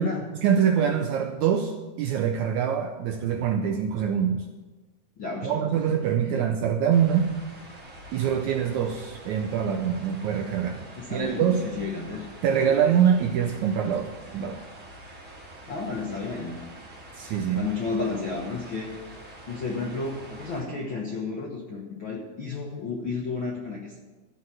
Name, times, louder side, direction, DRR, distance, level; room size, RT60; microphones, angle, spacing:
voice 1, 0.4-4.5 5.4-7.3 8.1-10.8 11.1-11.6 12.4-14.6 17.2-17.6, right 8 dB, 80° right, 4 dB, 1.7 m, -24 dB
voice 2, 5.2-5.6 6.3-6.4 11.0-12.3 12.7-12.9 15.7-16.6 17.5-18.9 19.5-24.0, left 4 dB, 65° left, -1 dB, 1.2 m, -32 dB
sound 1, 6.9-20.6, right 1 dB, 25° right, 2.5 m, -46 dB
14.0 x 5.7 x 7.4 m, 1.2 s
omnidirectional pair, 4.0 m